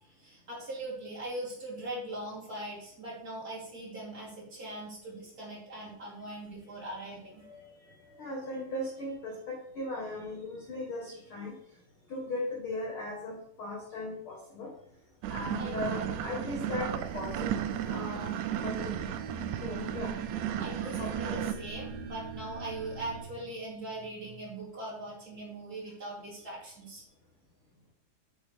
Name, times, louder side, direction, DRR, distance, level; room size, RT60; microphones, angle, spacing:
voice 1, 0.0-7.4 15.6-15.7 20.5-27.0, right 1 dB, 25° right, -6 dB, 3.2 m, -41 dB
voice 2, 7.4-11.6 12.1-14.7 15.3-18.3 18.6-18.9 19.6-20.1 21.0-21.4, left 2 dB, 60° left, -1 dB, 1.4 m, -38 dB
sound 1, 15.2-21.5, right 10 dB, 85° right, 1.7 m, -34 dB
sound 2, 16.1-23.2, right 4 dB, 55° right, 1.4 m, -44 dB
8.8 x 6.4 x 3.4 m, 0.74 s
omnidirectional pair, 4.0 m